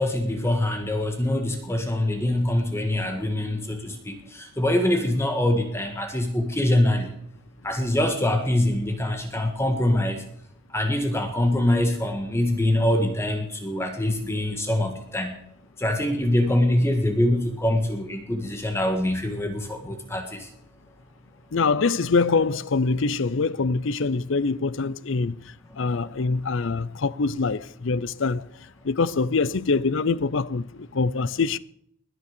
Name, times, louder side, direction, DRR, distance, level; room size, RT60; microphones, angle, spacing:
voice 1, 0.0-7.1 7.6-10.2 10.7-15.4 15.8-20.5, left 1 dB, 10° left, 1.8 m, -24 dB
voice 2, 21.5-25.4 25.8-28.4 28.8-31.6, left 4 dB, 65° left, 0.6 m, -24 dB
20.5 x 10.0 x 6.8 m
head